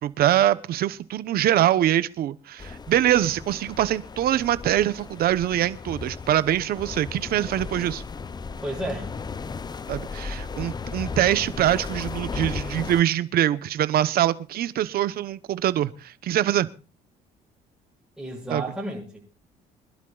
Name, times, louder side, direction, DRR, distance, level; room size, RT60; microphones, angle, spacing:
voice 1, 0.0-8.0 9.9-16.7 18.5-18.6, right 12 dB, 65° right, 1.0 m, -23 dB
sound 1, 2.6-13.0, left 5 dB, 25° left, 0.7 m, -35 dB
voice 2, 8.6-9.1 18.2-19.2, right 1 dB, 5° right, 7.3 m, -32 dB
25.5 x 11.5 x 2.4 m
cardioid pair, 110°, 17 cm